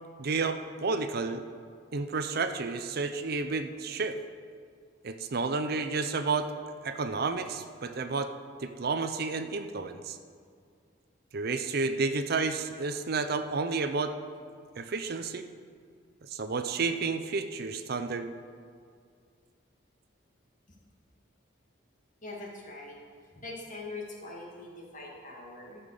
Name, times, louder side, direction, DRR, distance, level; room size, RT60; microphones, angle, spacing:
voice 1, 0.2-1.4 1.9-4.2 5.0-6.5 6.8-8.3 8.6-10.2 11.3-14.1 14.8-15.5 16.2-18.3, right 4 dB, 55° right, 9 dB, 0.6 m, -31 dB
voice 2, 22.2-23.0 23.3-25.8, left 2 dB, 45° left, -2 dB, 2.3 m, -42 dB
13.5 x 5.8 x 6.6 m, 2.2 s
head